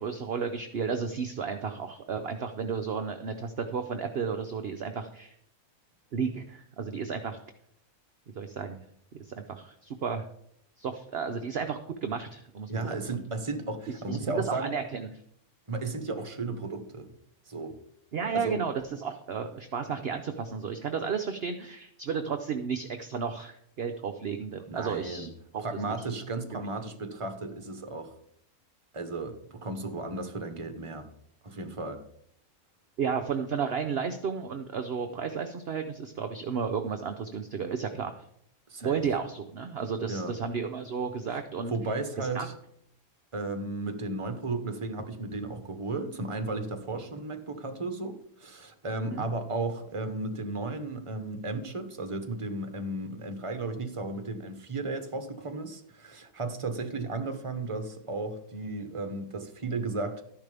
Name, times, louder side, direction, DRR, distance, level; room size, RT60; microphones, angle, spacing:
voice 1, 0.0-5.4 6.1-7.4 8.3-8.8 9.1-10.2 10.8-13.2 14.1-15.1 18.1-26.0 26.5-26.7 33.0-38.1 38.8-41.7 42.2-42.5 49.0-49.3, right 6 dB, 50° right, 7 dB, 0.9 m, -33 dB
voice 2, 12.7-14.7 15.7-17.1 17.5-17.8 18.3-18.6 24.7-25.3 25.6-28.1 28.9-31.1 31.4-32.0 38.7-39.0 40.1-40.3 41.3-41.4 41.7-42.5 43.3-60.2, right 3 dB, 25° right, 7 dB, 1.1 m, -34 dB
13.0 x 10.5 x 3.5 m, 0.69 s
omnidirectional pair, 1.6 m